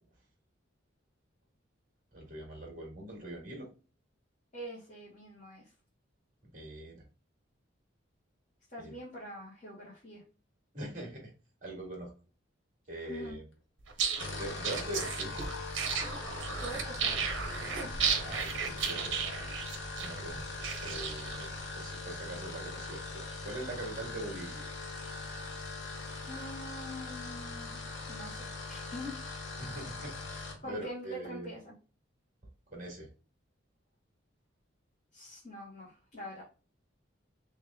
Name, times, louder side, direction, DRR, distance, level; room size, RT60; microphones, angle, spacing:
voice 1, 2.1-3.7 6.5-7.0 8.8-9.0 10.7-11.3 11.6-12.1 12.9-13.5 14.4-15.3 18.2-19.5 20.0-20.4 20.8-21.5 21.8-24.7 29.6-31.5 32.7-33.1, right 1 dB, 40° right, 0 dB, 1.7 m, -42 dB
voice 2, 4.5-5.7 8.7-10.2 13.0-13.4 16.6-17.4 26.3-27.8 28.1-29.2 30.6-31.7 35.1-36.4, equal, 35° left, -7 dB, 1.4 m, -44 dB
sound 1, 13.9-21.5, right 6 dB, 75° right, 0.8 m, -34 dB
sound 2, 14.1-30.6, left 3 dB, 70° left, 1.0 m, -41 dB
3.5 x 3.2 x 3.4 m, 0.35 s
head